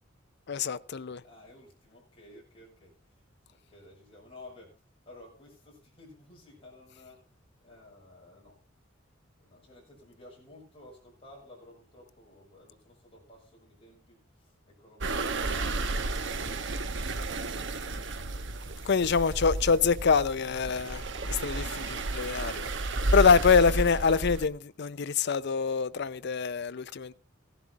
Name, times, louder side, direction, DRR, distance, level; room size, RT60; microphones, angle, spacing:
voice 1, 0.5-1.2 18.8-22.7 23.1-27.1, left 5 dB, 60° left, 0.5 m, -25 dB
voice 2, 1.2-8.6 9.4-16.2 17.0-19.2 21.1-21.4, left 2 dB, 30° left, 6.3 m, -55 dB
sound 1, 15.0-24.5, right 2 dB, 65° right, 1.0 m, -32 dB
16.0 x 11.0 x 3.6 m
head